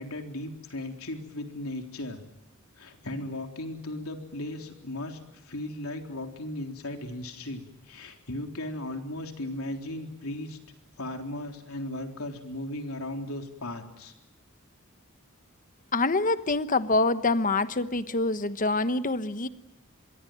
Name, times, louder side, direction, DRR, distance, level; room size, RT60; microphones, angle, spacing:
voice 1, 0.0-2.2 2.8-10.6 11.0-14.1, left 1 dB, 85° left, 4 dB, 3.8 m, -36 dB
voice 2, 15.9-19.5, left 3 dB, 40° left, 12 dB, 1.1 m, -25 dB
26.0 x 22.5 x 9.3 m, 0.89 s
head